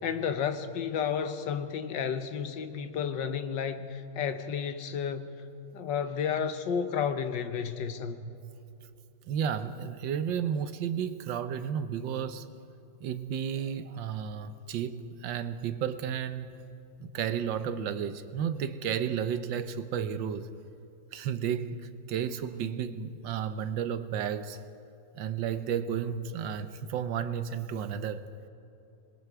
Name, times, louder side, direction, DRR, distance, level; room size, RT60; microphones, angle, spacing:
voice 1, 0.0-5.3 5.7-8.3, left 7 dB, 80° left, 1.7 m, -32 dB
voice 2, 9.3-12.5 13.0-16.5 17.0-20.5 21.1-24.6 25.1-28.2, right 8 dB, 85° right, 1.6 m, -32 dB
26.5 x 21.0 x 4.8 m
omnidirectional pair, 2.0 m